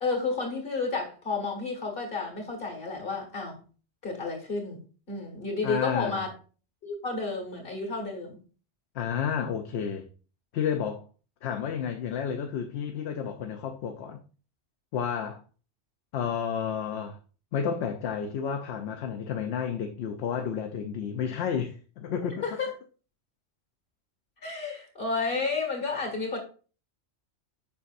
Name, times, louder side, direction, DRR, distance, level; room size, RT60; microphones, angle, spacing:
voice 1, 0.0-3.6 4.0-4.8 5.1-6.3 6.8-8.4 22.4-22.7 24.4-26.4, left 4 dB, 50° left, 1.9 m, -31 dB
voice 2, 5.6-6.2 8.9-10.1 10.5-11.0 11.4-14.2 14.9-15.4 16.1-17.2 17.5-22.4, left 7 dB, 70° left, 0.9 m, -31 dB
7.1 x 5.3 x 2.5 m
omnidirectional pair, 1.2 m